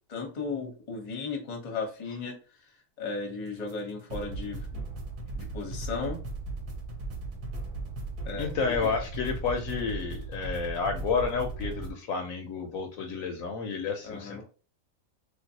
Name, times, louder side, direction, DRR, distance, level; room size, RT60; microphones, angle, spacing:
voice 1, 0.1-2.4 3.0-4.8 5.4-6.2 8.2-8.7 14.0-14.4, left 4 dB, 35° left, 2 dB, 0.7 m, -35 dB
sound 1, 3.7-3.8 4.1-11.9, right 2 dB, 70° right, 1.1 m, -37 dB
voice 2, 8.4-14.4, left 5 dB, 70° left, 4 dB, 0.9 m, -30 dB
3.4 x 2.5 x 2.7 m, 0.37 s
omnidirectional pair, 1.6 m